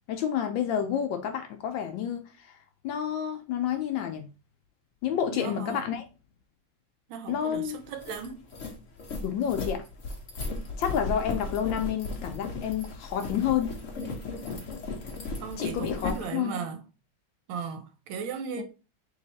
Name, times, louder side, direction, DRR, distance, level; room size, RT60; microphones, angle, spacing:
voice 1, 0.1-2.6 2.8-4.3 5.0-6.0 7.3-7.8 9.2-9.8 10.8-13.8 15.6-16.6 18.6-18.7, left 9 dB, 75° left, 1.1 m, -29 dB
voice 2, 5.3-5.9 7.1-8.5 15.4-16.8 17.5-18.6, right 6 dB, 75° right, 1.4 m, -36 dB
sound 1, 7.4-7.5 7.8-16.3, left 3 dB, 55° left, 0.8 m, -35 dB
3.4 x 3.2 x 3.8 m
omnidirectional pair, 2.3 m